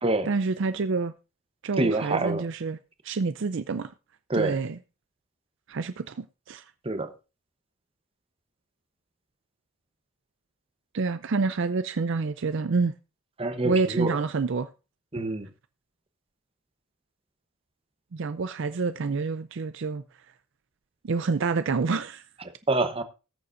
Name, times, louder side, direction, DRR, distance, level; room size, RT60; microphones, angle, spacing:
voice 1, 0.3-1.1 1.6-2.8 3.0-3.9 4.3-4.8 5.7-6.6 10.9-12.9 13.6-14.7 18.1-20.0 21.0-22.2, right 4 dB, 55° right, 0.5 m, -27 dB
voice 2, 1.8-2.5 4.3-4.6 6.8-7.1 13.4-14.2 15.1-15.5 22.7-23.0, right 2 dB, 25° right, 0.9 m, -26 dB
19.5 x 6.9 x 2.6 m
head